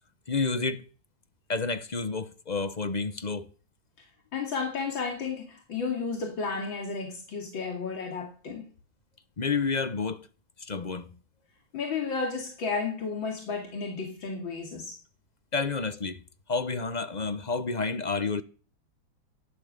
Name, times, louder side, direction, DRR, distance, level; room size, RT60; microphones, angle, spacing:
voice 1, 0.3-0.8 1.5-3.5 9.4-10.3 10.6-11.1 15.5-16.2 16.5-18.4, left 4 dB, 35° left, 0.7 m, -30 dB
voice 2, 4.3-8.7 11.7-15.0, left 4 dB, 85° left, 3.2 m, -32 dB
15.5 x 11.0 x 6.7 m
omnidirectional pair, 2.1 m